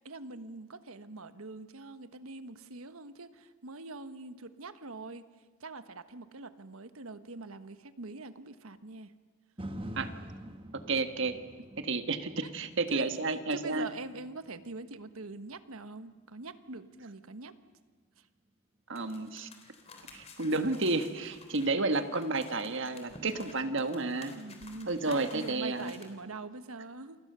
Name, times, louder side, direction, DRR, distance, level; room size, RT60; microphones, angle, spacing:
voice 1, 0.0-5.3 5.6-9.1 12.4-12.5 12.9-17.5 18.2-18.3 23.1-23.7 24.3-27.2, right 3 dB, 80° right, 11 dB, 1.3 m, -44 dB
sound 1, 9.6-17.7 18.2-18.3, equal, 25° right, 1.3 m, -48 dB
voice 2, 10.9-11.4 11.8-13.9 18.9-19.5 20.1-24.4 24.9-25.9, right 3 dB, 60° right, 9 dB, 1.5 m, -31 dB
sound 2, 18.9-26.0, left 3 dB, 30° left, 3.6 m, -53 dB
29.5 x 24.5 x 6.8 m, 1.3 s
head